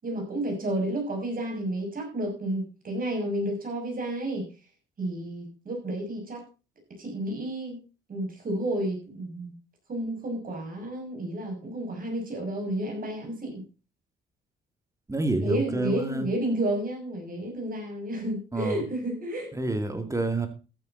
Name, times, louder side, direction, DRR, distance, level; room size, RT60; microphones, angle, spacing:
voice 1, 0.0-4.5 5.0-6.4 7.0-7.8 8.1-9.5 9.9-13.6 15.4-19.5, right 1 dB, 45° right, 2 dB, 6.3 m, -31 dB
voice 2, 15.1-16.3 18.5-18.8 19.5-20.5, right 2 dB, 15° right, 8 dB, 2.3 m, -28 dB
14.0 x 8.8 x 4.0 m, 0.33 s
cardioid pair, 90°, 20 cm